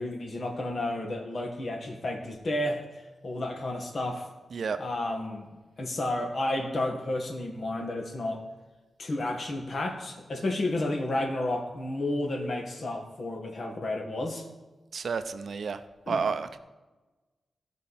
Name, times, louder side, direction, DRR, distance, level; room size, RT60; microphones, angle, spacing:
voice 1, 0.0-4.3 4.8-5.5 5.8-8.4 9.0-14.4 16.1-16.2, left 1 dB, 50° left, 2 dB, 1.8 m, -31 dB
voice 2, 14.9-16.6, right 5 dB, 65° right, 10 dB, 0.6 m, -30 dB
16.5 x 5.5 x 4.3 m, 1.2 s
wide cardioid pair, 110°, 0 cm